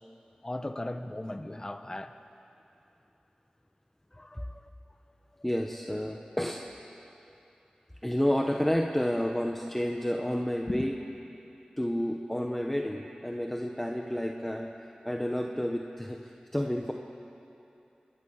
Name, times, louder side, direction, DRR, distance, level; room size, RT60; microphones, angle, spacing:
voice 1, 0.4-2.1 4.1-4.7 10.7-10.8, left 1 dB, 25° left, 8 dB, 1.4 m, -37 dB
voice 2, 5.4-6.6 8.0-11.0 11.8-16.9, equal, 10° left, 1 dB, 1.4 m, -30 dB
28.0 x 22.0 x 6.7 m, 2.8 s
wide cardioid pair, 55°, 3 cm